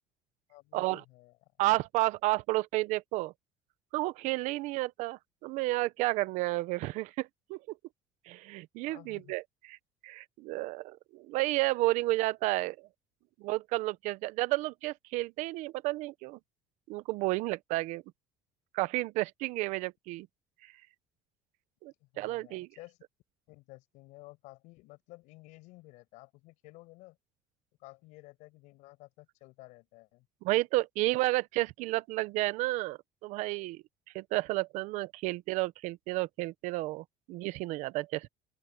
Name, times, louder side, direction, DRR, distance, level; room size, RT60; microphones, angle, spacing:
voice 1, 0.5-1.4 8.9-9.3 22.0-23.0 23.5-27.2 27.8-30.3, left 22 dB, 80° left, 5.8 m, -53 dB
voice 2, 1.6-3.3 3.9-7.6 8.3-9.4 9.7-9.8 10.0-12.8 13.4-16.4 16.9-18.0 18.7-20.3 21.8-22.7 30.4-33.8 34.1-38.3, right 19 dB, 75° right, 0.9 m, -31 dB
open air
supercardioid pair, 95°, 12 cm